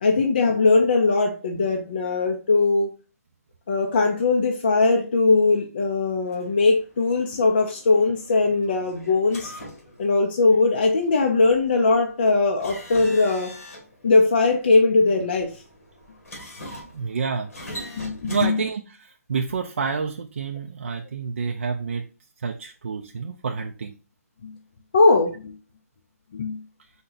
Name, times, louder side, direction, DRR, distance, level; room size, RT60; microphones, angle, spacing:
voice 1, 0.0-2.9 3.7-9.5 10.0-13.5 14.0-15.5 18.0-18.6 24.4-24.5 24.9-25.5 26.3-26.6, left 3 dB, 35° left, 1 dB, 0.6 m, -20 dB
sound 1, 6.3-18.5, equal, 55° left, 2.0 m, -43 dB
voice 2, 16.9-17.5 18.2-22.0 22.4-23.9, right 5 dB, 45° right, 2 dB, 0.4 m, -28 dB
4.3 x 2.7 x 3.9 m, 0.34 s
hypercardioid pair, 175°, 9 cm